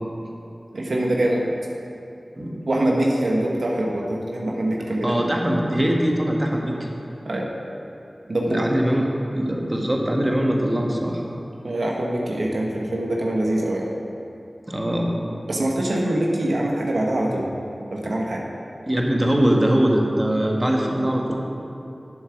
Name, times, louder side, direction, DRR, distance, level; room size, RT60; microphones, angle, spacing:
voice 1, 0.7-1.6 2.7-5.2 7.2-7.5 8.3-8.6 11.6-13.9 15.5-17.5 17.9-18.5, right 1 dB, 85° right, -1 dB, 1.0 m, -23 dB
voice 2, 5.0-6.9 8.5-9.1 9.3-11.2 14.7-15.1 18.9-21.4, right 1 dB, 30° right, 0 dB, 1.3 m, -22 dB
8.1 x 7.2 x 5.9 m, 2.7 s
wide cardioid pair, 40°, 0 cm